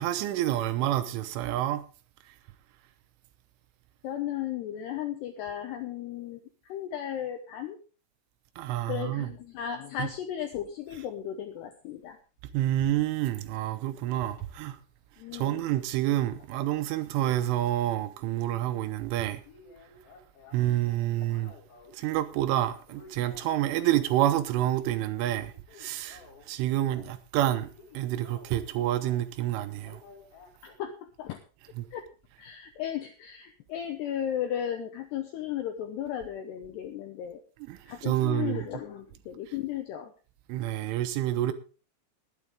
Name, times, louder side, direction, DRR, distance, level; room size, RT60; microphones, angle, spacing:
voice 1, 0.0-1.8 8.6-9.3 10.0-10.1 12.5-14.8 15.3-19.4 20.5-21.5 21.9-27.7 27.9-30.0 31.8-31.9 37.7-38.7 40.5-41.5, right 13 dB, 80° right, 3.2 m, -28 dB
voice 2, 4.0-7.8 8.9-12.2 15.2-15.6 21.2-21.3 30.6-31.4 31.9-32.1 32.4-37.4 37.9-40.1, left 10 dB, 80° left, 2.5 m, -35 dB
sound 1, 12.0-12.2 14.3-14.8 15.2-17.3 17.6-17.8 18.1-18.2 18.5-18.6 18.9-19.0 19.4-22.0 22.3-24.1 24.4-24.7 25.1-27.2 27.4-29.3 29.8-30.8, left 4 dB, 55° left, 3.5 m, -54 dB
20.0 x 8.3 x 3.6 m
omnidirectional pair, 6.0 m